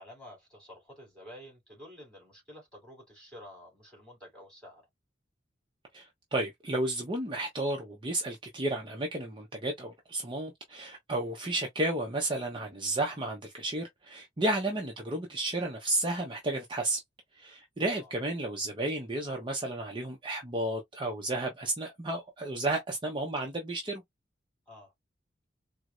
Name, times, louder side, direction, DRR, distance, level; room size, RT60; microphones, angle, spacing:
voice 1, 0.0-4.8 17.9-18.2 24.7-24.9, left 1 dB, 5° left, 2.9 m, -50 dB
voice 2, 5.9-17.0 17.4-24.0, right 1 dB, 25° right, 0.7 m, -32 dB
4.5 x 2.1 x 2.4 m
head